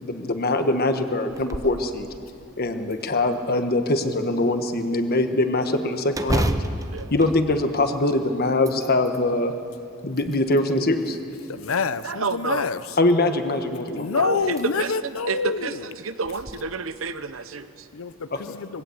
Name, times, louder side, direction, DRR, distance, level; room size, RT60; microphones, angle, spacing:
voice 1, 0.0-2.1 2.6-6.5 7.1-9.5 10.0-11.2 13.0-14.1 18.3-18.6, left 2 dB, 50° left, 1.4 m, -23 dB
sound 1, 1.3-1.8 2.3-2.4 2.9-3.7 6.1-8.1 8.5-9.3 9.9-10.7 11.6-12.3 13.8-13.9 14.4-14.6 15.1-15.2 16.3-16.5, right 1 dB, 15° right, 0.8 m, -30 dB
voice 2, 11.5-12.8 14.0-15.8 17.9-18.8, left 5 dB, 85° left, 0.6 m, -27 dB
voice 3, 12.0-12.7 14.1-17.9, right 4 dB, 75° right, 0.9 m, -29 dB
21.5 x 16.5 x 8.0 m
head